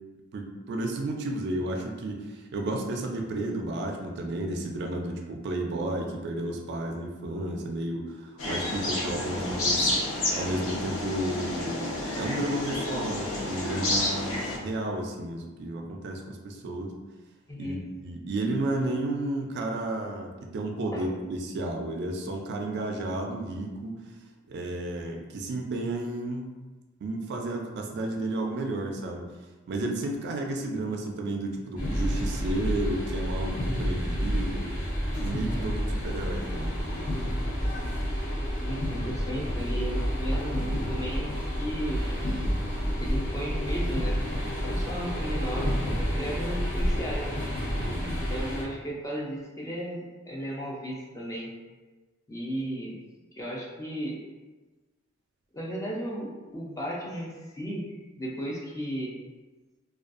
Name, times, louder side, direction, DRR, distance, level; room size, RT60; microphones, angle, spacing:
voice 1, 0.3-9.9 10.3-17.0 17.6-24.0 24.5-26.5 27.0-29.3 29.7-34.7 35.2-37.2 47.8-48.3, right 2 dB, 55° right, 2 dB, 0.3 m, -32 dB
sound 1, 8.4-14.6, left 2 dB, 85° left, 0.5 m, -30 dB
voice 2, 17.5-17.8 20.9-21.1 38.6-42.0 43.0-44.3 44.6-47.3 48.1-51.6 52.3-52.9 53.4-54.2 55.5-59.1, equal, 15° left, -3 dB, 0.4 m, -35 dB
sound 2, 31.8-48.6, equal, 45° left, 1.0 m, -29 dB
2.5 x 2.3 x 2.4 m, 1.2 s
head